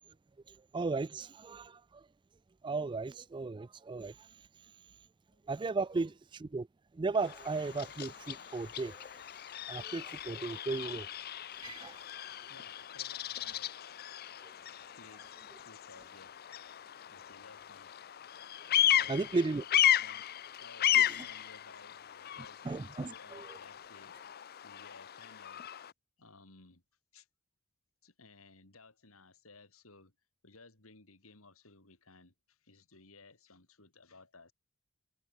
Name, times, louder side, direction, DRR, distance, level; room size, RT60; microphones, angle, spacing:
voice 1, 0.5-2.1 2.6-4.3 5.5-6.7 6.9-9.2 9.7-11.1 11.6-12.0 14.4-14.5 19.1-19.6 20.9-21.1 22.6-23.6, right 3 dB, 20° right, 0.3 m, -36 dB
Bird vocalization bird call bird song, 7.2-25.9, left 11 dB, 45° left, 0.5 m, -35 dB
voice 2, 12.0-14.1 15.0-15.2 15.6-16.3 17.1-18.2 18.9-20.2 20.6-22.7 22.9-24.1 24.6-25.6 26.2-26.8 27.1-27.3 28.0-30.1 30.4-34.5, left 3 dB, 75° left, 3.7 m, -58 dB
head